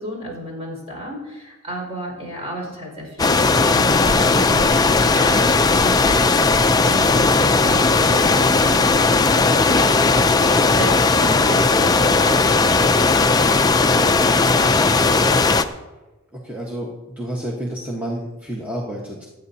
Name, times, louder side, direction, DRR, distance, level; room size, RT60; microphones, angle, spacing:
voice 1, 0.0-4.8 5.1-10.0 10.7-13.1, right 1 dB, 25° right, -1 dB, 5.0 m, -33 dB
sound 1, 3.2-15.6, left 3 dB, 15° left, 0.4 m, -16 dB
voice 2, 16.3-19.3, right 1 dB, 5° right, -4 dB, 1.2 m, -31 dB
26.5 x 9.5 x 2.8 m, 1.1 s
head